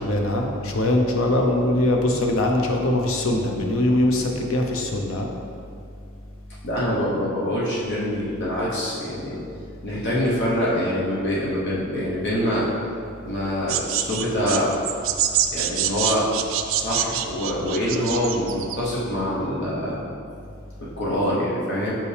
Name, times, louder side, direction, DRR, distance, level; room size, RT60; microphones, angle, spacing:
voice 1, 0.0-5.3, left 1 dB, 80° left, 1 dB, 0.7 m, -22 dB
voice 2, 6.6-9.4 9.8-12.7 13.2-14.7 15.5-16.3 16.7-20.0 20.8-22.0, equal, 60° left, -7 dB, 1.1 m, -25 dB
sound 1, 13.7-18.8, right 10 dB, 70° right, 0.4 m, -26 dB
5.5 x 5.3 x 3.3 m, 2.4 s
head